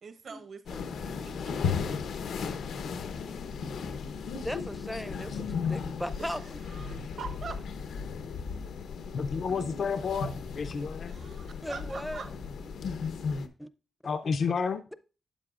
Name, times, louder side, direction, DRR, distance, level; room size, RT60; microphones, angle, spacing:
voice 1, 0.0-1.1 1.4-2.5 6.7-7.6 8.2-8.3 11.1-12.3, right 5 dB, 55° right, 1.0 m, -44 dB
sound 1, 0.7-13.5, left 5 dB, 90° left, 0.9 m, -35 dB
voice 2, 4.4-6.6 11.6-12.2 13.6-13.7, equal, ahead, 0.5 m, -37 dB
voice 3, 9.1-11.1 14.0-14.8, left 5 dB, 55° left, 0.5 m, -31 dB
12.0 x 8.3 x 2.5 m
wide cardioid pair, 140°, 0 cm